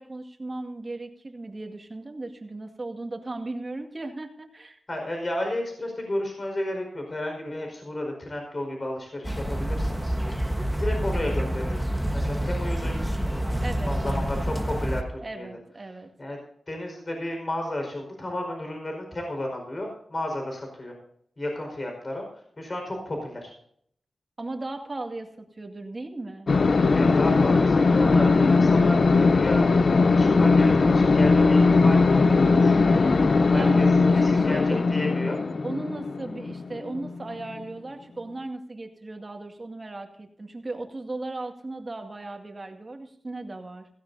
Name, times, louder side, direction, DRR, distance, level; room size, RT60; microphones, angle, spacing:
voice 1, 0.0-4.8 13.6-14.3 15.2-16.1 24.4-26.5 33.5-35.0 35.6-43.9, right 2 dB, 35° right, 4 dB, 2.1 m, -37 dB
voice 2, 4.9-10.1 10.8-15.5 16.2-16.4 16.7-20.9 21.4-22.3 22.6-23.5 26.9-33.0 33.5-33.9 34.1-35.4, left 1 dB, 40° left, 2 dB, 4.9 m, -33 dB
Atmos - Park Sounds, 9.2-15.0, equal, ahead, 1.3 m, -27 dB
sound 1, 26.5-37.5, left 3 dB, 60° left, 0.6 m, -19 dB
16.0 x 16.0 x 2.7 m, 0.66 s
wide cardioid pair, 85°, 0 cm